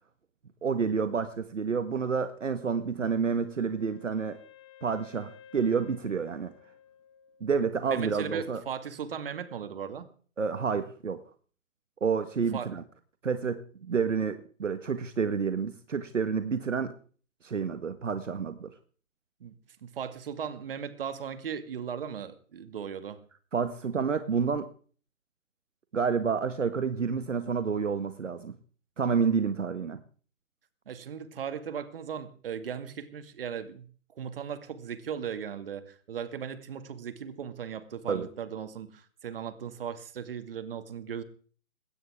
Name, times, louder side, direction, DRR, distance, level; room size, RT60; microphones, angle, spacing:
voice 1, 0.6-4.4 4.8-6.5 7.4-8.6 10.4-11.2 12.0-12.8 13.2-16.9 17.4-18.7 23.5-24.7 25.9-28.5 29.0-30.0 38.1-38.3, right 6 dB, 65° right, 10 dB, 1.7 m, -29 dB
Wind instrument woodwind instrument, 3.0-7.8, left 9 dB, 20° left, 1.5 m, -55 dB
voice 2, 7.9-10.1 12.5-12.7 19.4-23.2 30.9-41.2, right 7 dB, 45° right, 11 dB, 2.3 m, -37 dB
20.5 x 18.0 x 3.7 m, 0.43 s
figure-of-eight pair, 145°, 40 cm